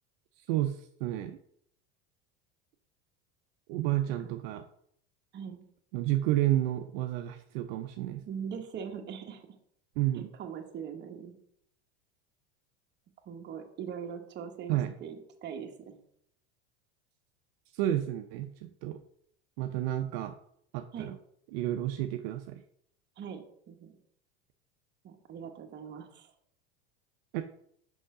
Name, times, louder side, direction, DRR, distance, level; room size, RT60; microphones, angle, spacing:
voice 1, 0.5-1.4 3.7-4.6 5.9-8.2 10.0-10.3 14.7-14.9 17.7-19.0 19.6-20.3 20.7-21.2 21.5-22.6 27.3-27.4, right 13 dB, 65° right, 7 dB, 0.5 m, -31 dB
voice 2, 5.3-5.6 8.2-9.4 10.1-11.4 13.3-16.0 20.9-21.1 23.2-24.0 25.0-26.3, right 7 dB, 35° right, 4 dB, 1.0 m, -41 dB
5.6 x 5.4 x 3.7 m, 0.68 s
supercardioid pair, 115°, 32 cm